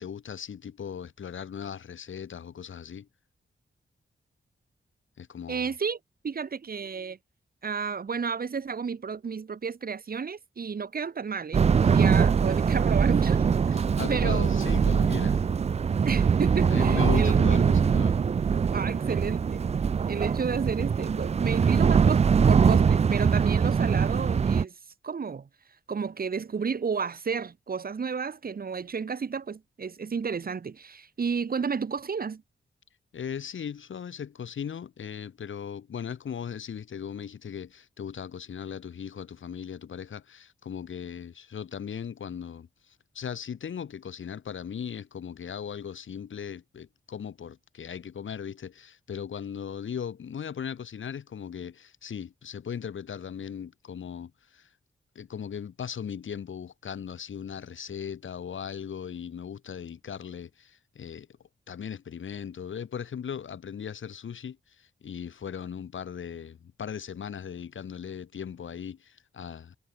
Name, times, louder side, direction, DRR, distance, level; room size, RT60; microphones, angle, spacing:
voice 1, 0.0-3.1 5.2-5.7 13.7-15.4 16.7-18.2 33.1-54.7 55.1-61.3 61.7-69.8, left 7 dB, 80° left, 3.5 m, -38 dB
voice 2, 5.5-6.0 6.2-7.2 7.6-13.4 14.1-14.7 16.0-17.4 18.7-19.6 20.1-24.7 25.0-25.5 25.9-32.4, right 5 dB, 50° right, 2.9 m, -32 dB
sound 1, 11.5-24.6, right 6 dB, 35° right, 0.4 m, -22 dB
wide cardioid pair, 155°, 20 cm